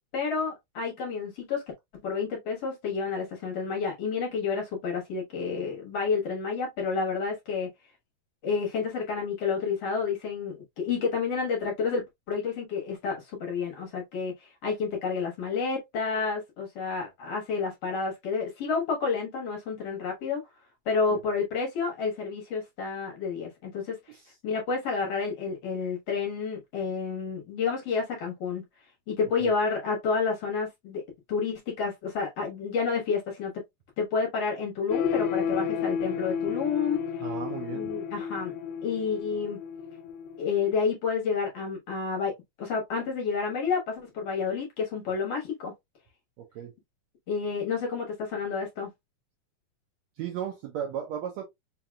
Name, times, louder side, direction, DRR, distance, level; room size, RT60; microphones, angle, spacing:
voice 1, 0.1-1.6 2.0-7.7 8.4-20.4 20.9-24.2 24.4-28.6 29.1-31.0 31.3-33.6 34.0-37.3 37.7-38.5 38.8-39.6 40.4-45.7 47.3-48.9, left 5 dB, 60° left, 2.0 m, -30 dB
sound 1, 34.9-40.7, left 7 dB, 80° left, 1.8 m, -32 dB
voice 2, 37.2-37.9 46.5-46.7 50.2-51.4, right 9 dB, 75° right, 1.7 m, -35 dB
5.0 x 2.9 x 2.3 m
omnidirectional pair, 3.7 m